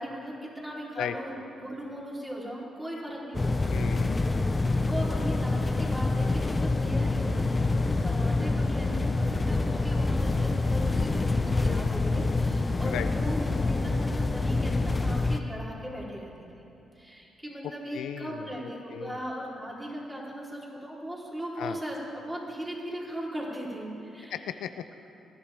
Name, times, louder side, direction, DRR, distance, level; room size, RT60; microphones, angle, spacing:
voice 1, 0.0-1.3 1.6-3.7 4.8-16.3 16.9-24.4, equal, 10° right, -5 dB, 3.3 m, -38 dB
voice 2, 1.0-1.4 3.7-4.3 12.8-13.1 17.9-19.2 21.6-21.8 24.3-24.9, left 10 dB, 85° left, 10 dB, 0.4 m, -36 dB
sound 1, 3.3-15.4, left 3 dB, 25° left, 0.6 m, -26 dB
20.0 x 11.5 x 3.4 m, 2.8 s
cardioid pair, 75°, 0 cm